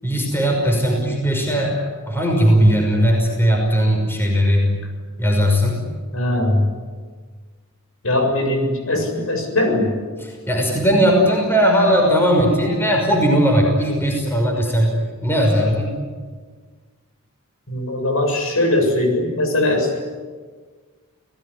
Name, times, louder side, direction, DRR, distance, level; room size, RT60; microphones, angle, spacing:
voice 1, 0.0-4.7 5.2-5.8 10.2-14.9 15.2-16.0, equal, 10° left, 1 dB, 5.8 m, -18 dB
voice 2, 6.1-6.7 8.0-9.9 17.7-20.0, left 1 dB, 75° left, 3 dB, 7.3 m, -20 dB
29.5 x 18.5 x 9.9 m, 1.5 s
head